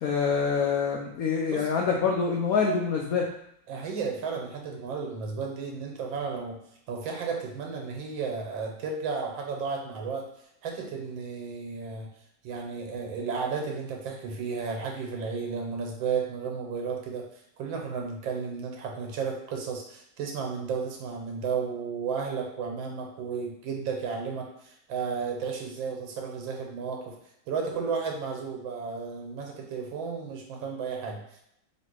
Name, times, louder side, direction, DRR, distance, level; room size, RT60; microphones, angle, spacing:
voice 1, 0.0-3.3, left 5 dB, 80° left, 0 dB, 0.8 m, -26 dB
voice 2, 3.7-6.6 6.9-10.2 10.6-12.1 12.4-17.2 17.6-27.1 27.5-31.4, right 5 dB, 85° right, 1 dB, 1.6 m, -33 dB
3.2 x 3.0 x 4.5 m, 0.76 s
omnidirectional pair, 2.1 m